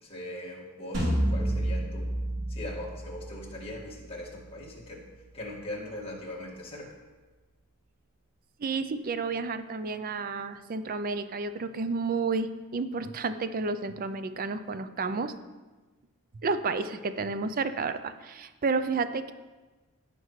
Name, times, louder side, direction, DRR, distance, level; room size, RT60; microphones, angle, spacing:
voice 1, 0.0-2.1 2.5-5.0 5.3-6.9, left 1 dB, 25° left, -3 dB, 1.9 m, -40 dB
sound 1, 0.9-6.0, right 1 dB, 55° right, 3.1 m, -32 dB
voice 2, 8.6-15.3 16.4-19.3, right 4 dB, 40° right, 11 dB, 0.5 m, -31 dB
15.5 x 5.4 x 3.2 m, 1.2 s
head